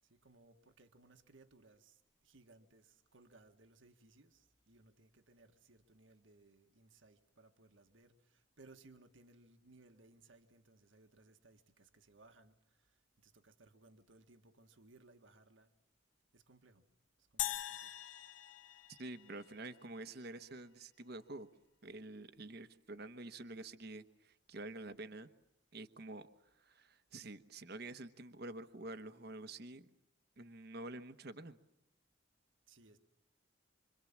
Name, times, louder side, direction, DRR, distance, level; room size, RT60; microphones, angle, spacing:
voice 1, 0.0-15.7 16.3-16.9 17.2-18.0 32.7-33.0, right 2 dB, 80° right, 1.7 m, -64 dB
sound 1, 17.4-19.8, left 13 dB, 70° left, 0.9 m, -43 dB
voice 2, 18.9-21.5 21.8-25.3 25.7-26.3 26.6-29.9 30.4-31.6, right 2 dB, 55° right, 1.1 m, -48 dB
26.5 x 26.0 x 7.3 m
head